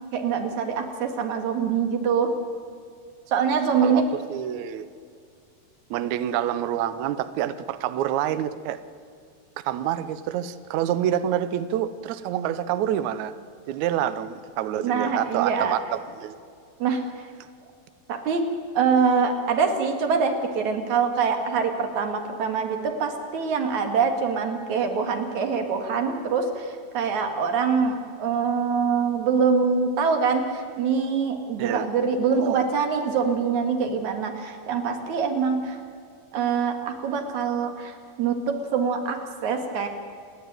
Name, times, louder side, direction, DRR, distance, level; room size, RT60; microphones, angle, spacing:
voice 1, 0.1-2.3 3.3-4.0 14.8-15.8 16.8-17.0 18.1-18.5 18.7-35.8 36.3-39.9, right 5 dB, 55° right, 5 dB, 2.9 m, -24 dB
voice 2, 4.3-4.9 5.9-8.8 9.6-13.3 13.7-16.4 31.6-31.9 32.4-32.7, right 11 dB, 90° right, 13 dB, 1.6 m, -27 dB
29.0 x 10.0 x 9.2 m, 2.3 s
omnidirectional pair, 4.3 m